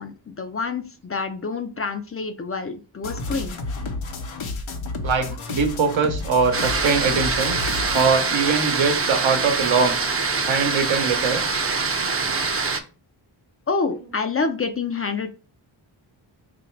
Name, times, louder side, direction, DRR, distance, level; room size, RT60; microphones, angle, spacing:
voice 1, 0.0-3.6 13.7-15.3, left 4 dB, 30° left, 0.5 m, -27 dB
sound 1, 3.0-8.1, left 3 dB, 80° left, 0.9 m, -31 dB
voice 2, 5.0-7.6 7.9-10.0 10.4-11.4, right 5 dB, 75° right, 0.9 m, -22 dB
sound 2, 6.5-12.8, right 4 dB, 30° right, 0.6 m, -24 dB
3.0 x 2.6 x 4.4 m
cardioid pair, 65°, 47 cm